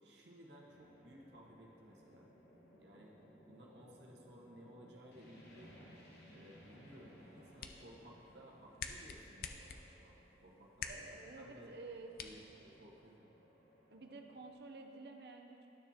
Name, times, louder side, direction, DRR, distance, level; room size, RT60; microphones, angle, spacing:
voice 1, 0.0-2.3 2.8-3.1 3.5-5.8 6.3-11.7 12.2-13.3, equal, 85° right, -3 dB, 1.1 m, -58 dB
sound 1, 0.7-14.5, equal, 75° left, 1.3 m, -62 dB
sound 2, 7.2-13.2, left 5 dB, 55° left, 0.4 m, -50 dB
voice 2, 10.9-12.6 13.9-15.7, right 3 dB, 65° right, 3 dB, 0.6 m, -51 dB
11.5 x 6.2 x 2.8 m, 2.8 s
head